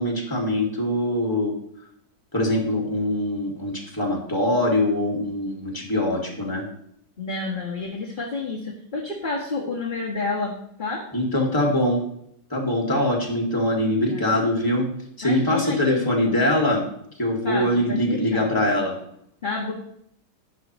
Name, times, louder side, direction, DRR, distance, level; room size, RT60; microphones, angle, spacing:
voice 1, 0.0-1.5 2.3-6.7 11.1-12.1 12.5-14.9 15.2-16.9 17.2-19.0, left 1 dB, 10° left, 0 dB, 2.4 m, -23 dB
voice 2, 7.2-11.0 13.9-14.3 15.2-16.4 17.4-18.5 19.4-19.7, left 3 dB, 30° left, -3 dB, 1.7 m, -30 dB
11.5 x 10.0 x 3.1 m, 0.71 s
omnidirectional pair, 1.8 m